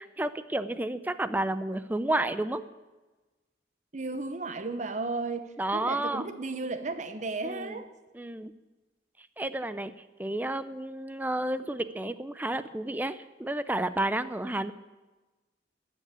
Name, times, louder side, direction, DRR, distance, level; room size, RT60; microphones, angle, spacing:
voice 1, 0.0-2.6 5.6-6.2 7.4-7.8 8.1-8.5 9.4-9.9 10.2-14.7, right 1 dB, 10° right, 13 dB, 0.5 m, -31 dB
voice 2, 3.9-7.9, right 3 dB, 45° right, 10 dB, 1.0 m, -34 dB
13.5 x 7.3 x 9.8 m, 1.2 s
head